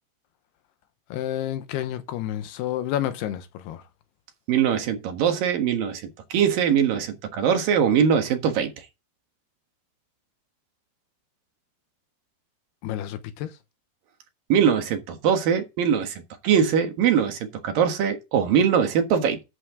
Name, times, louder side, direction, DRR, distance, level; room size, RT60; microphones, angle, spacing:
voice 1, 1.1-3.8 12.8-13.5, left 12 dB, 85° left, 3.1 m, -30 dB
voice 2, 4.5-6.0 6.3-8.7 14.5-19.4, right 8 dB, 65° right, 3.1 m, -22 dB
11.0 x 8.3 x 3.8 m
omnidirectional pair, 4.6 m